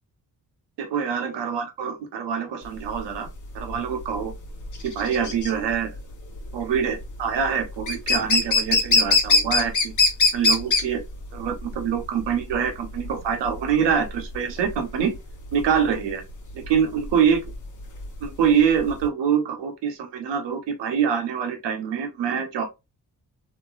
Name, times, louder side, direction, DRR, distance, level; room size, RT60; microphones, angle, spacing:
voice 1, 0.8-3.3 3.5-4.3 4.8-5.9 6.5-9.9 10.3-11.0 11.3-15.1 15.5-16.2 16.5-17.4 18.2-22.7, right 7 dB, 80° right, 1.0 m, -25 dB
sound 1, 2.7-19.1, left 3 dB, 45° left, 1.1 m, -23 dB
3.2 x 2.9 x 2.3 m
supercardioid pair, 50°, 42 cm